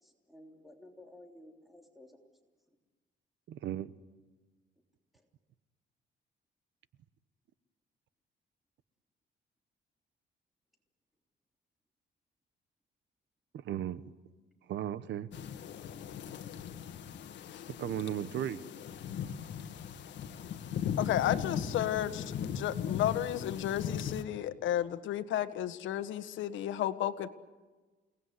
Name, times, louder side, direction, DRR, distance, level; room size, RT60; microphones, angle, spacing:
voice 1, 0.0-2.2 21.3-21.8, left 1 dB, ahead, 3.4 m, -54 dB
voice 2, 3.5-3.9 13.6-14.0 14.7-15.3 17.8-18.6, right 10 dB, 75° right, 1.1 m, -35 dB
sound 1, 15.3-24.2, left 8 dB, 70° left, 2.0 m, -38 dB
voice 3, 21.0-27.3, left 11 dB, 90° left, 1.6 m, -33 dB
29.5 x 19.5 x 9.7 m
cardioid pair, 150°, 19 cm